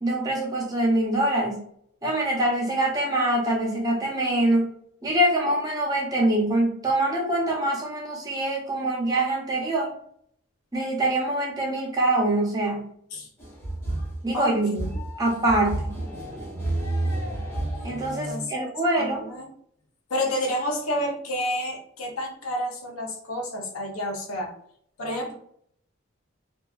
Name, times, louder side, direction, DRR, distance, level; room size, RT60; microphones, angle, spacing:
voice 1, 0.0-1.6 2.0-4.7 5.0-9.9 10.7-12.9 14.2-14.8 15.2-16.0 17.8-19.3, right 1 dB, 15° right, -2 dB, 0.5 m, -24 dB
sound 1, 13.4-18.4, right 1 dB, 10° left, 0.8 m, -30 dB
voice 2, 14.3-14.9 18.2-18.7 19.0-19.5 20.1-24.5 25.0-25.4, left 1 dB, 85° left, 1 dB, 0.6 m, -30 dB
2.6 x 2.2 x 2.3 m, 0.65 s
head